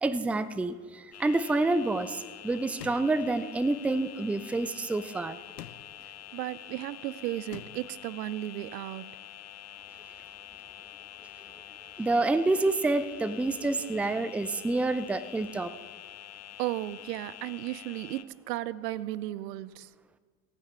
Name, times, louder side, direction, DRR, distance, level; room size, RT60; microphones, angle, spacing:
voice 1, 0.0-5.4 12.0-15.7, right 2 dB, 5° right, 0.4 m, -28 dB
sound 1, 1.1-18.2, left 12 dB, 35° left, 0.7 m, -47 dB
sound 2, 2.8-3.3 5.6-6.1 7.5-8.0, left 12 dB, 90° left, 0.6 m, -46 dB
voice 2, 6.3-9.2 16.6-19.9, right 15 dB, 75° right, 0.6 m, -35 dB
18.5 x 9.2 x 4.3 m
hypercardioid pair, 70°, 49 cm